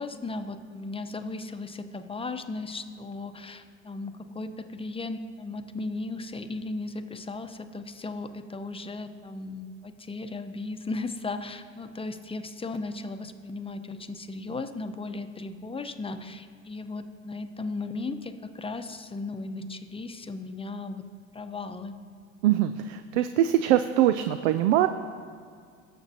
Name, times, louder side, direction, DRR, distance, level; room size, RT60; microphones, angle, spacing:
voice 1, 0.0-21.0 21.3-21.9, left 3 dB, 15° left, 9 dB, 0.8 m, -36 dB
voice 2, 22.4-24.9, right 12 dB, 80° right, 10 dB, 0.5 m, -23 dB
18.0 x 6.8 x 2.8 m, 2.1 s
hypercardioid pair, 75°, 37 cm